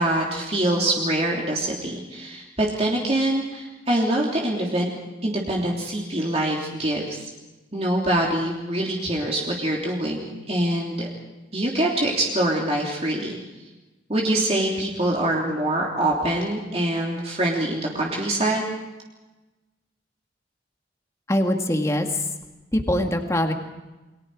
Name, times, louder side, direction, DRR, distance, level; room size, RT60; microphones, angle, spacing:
voice 1, 0.0-4.9 5.2-7.3 7.7-11.1 11.5-13.4 14.1-18.6, right 1 dB, 35° right, -2 dB, 3.3 m, -24 dB
voice 2, 21.3-22.3 22.7-23.5, left 1 dB, 15° left, 4 dB, 2.1 m, -23 dB
29.5 x 23.5 x 4.9 m, 1.1 s
head